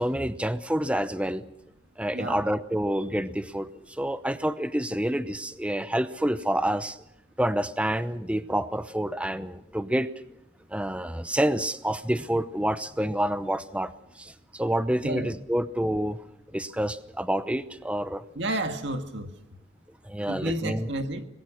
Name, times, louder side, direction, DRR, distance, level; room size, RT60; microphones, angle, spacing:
voice 1, 0.0-1.4 2.0-7.0 7.4-10.1 10.7-13.9 14.2-16.2 16.5-18.2 20.0-20.9, right 1 dB, 5° right, 0.7 m, -28 dB
voice 2, 15.0-15.3 18.4-19.3 20.3-21.3, right 1 dB, 65° right, 1.9 m, -31 dB
25.5 x 20.5 x 6.3 m
head